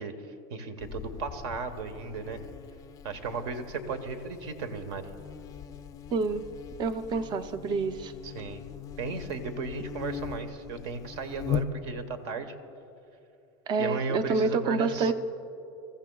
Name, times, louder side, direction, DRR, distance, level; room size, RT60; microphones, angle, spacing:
voice 1, 0.0-2.4 3.0-5.1 8.2-8.6 9.0-12.5 13.8-15.1, right 4 dB, 70° right, 9 dB, 1.2 m, -35 dB
Buzz, 0.8-12.2, left 8 dB, 25° left, 0.4 m, -40 dB
voice 2, 6.1-6.5 6.8-8.1 13.7-15.1, right 4 dB, 30° right, 10 dB, 0.6 m, -28 dB
23.0 x 14.5 x 2.3 m, 2.9 s
supercardioid pair, 140°, 14 cm